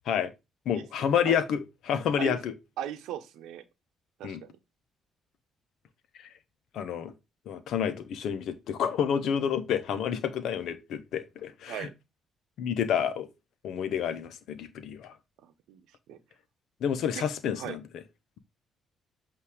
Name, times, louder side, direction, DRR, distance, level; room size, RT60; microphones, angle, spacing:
voice 1, 0.7-1.6 1.9-2.5 4.2-4.4 6.7-7.1 7.5-11.9 12.6-13.3 13.6-15.1 16.8-17.8, left 8 dB, 70° left, 1.0 m, -29 dB
voice 2, 2.8-3.6 4.2-4.6 11.7-11.9 15.4-16.2 17.1-17.2 17.6-17.8, right 11 dB, 80° right, 0.8 m, -38 dB
8.2 x 2.8 x 4.9 m
supercardioid pair, 60°, 0 cm